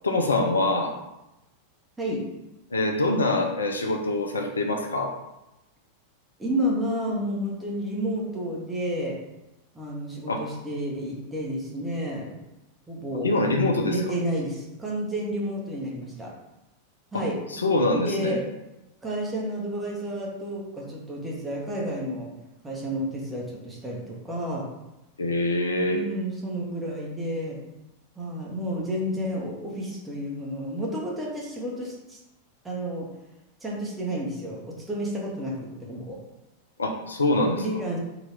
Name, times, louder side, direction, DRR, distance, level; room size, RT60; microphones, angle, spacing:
voice 1, 0.0-0.9 2.7-5.2 10.3-10.4 13.2-14.0 17.1-18.4 25.2-26.0 36.8-37.6, left 2 dB, 75° left, 3 dB, 0.6 m, -24 dB
voice 2, 6.4-9.2 9.7-12.3 12.9-13.3 13.8-16.3 17.1-17.4 18.0-18.4 19.0-22.3 22.6-24.7 25.9-27.6 28.1-32.2 32.6-33.1 33.6-36.2 37.6-38.0, equal, 10° right, -4 dB, 1.4 m, -31 dB
4.0 x 2.9 x 4.5 m, 0.95 s
figure-of-eight pair, 90°, 0 cm